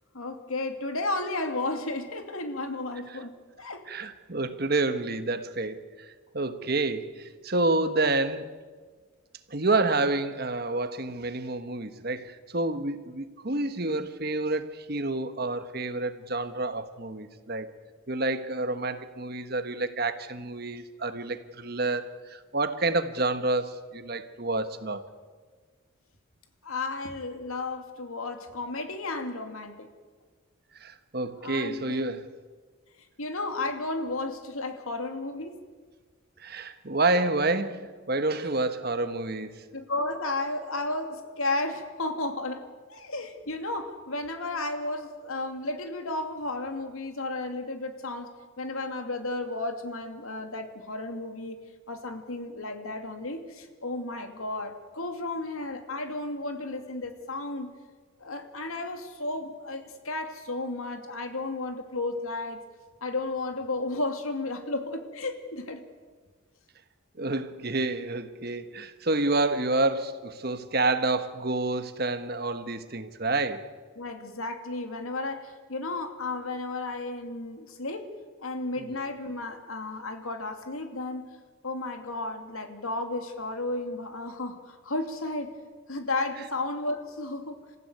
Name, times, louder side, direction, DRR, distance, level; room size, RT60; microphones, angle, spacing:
voice 1, 0.1-3.8 26.6-29.9 31.4-32.0 33.2-35.6 37.1-37.3 38.4-38.5 39.7-51.6 51.9-57.7 58.2-62.6 63.0-65.8 74.0-78.1 78.4-81.3 81.6-85.5 85.9-87.6, left 2 dB, 85° left, 2.5 m, -33 dB
voice 2, 3.9-8.5 9.5-17.7 18.1-25.0 30.8-32.3 36.4-39.6 67.2-73.7 78.8-78.9, right 2 dB, 45° right, 1.3 m, -29 dB
27.0 x 15.0 x 9.4 m
head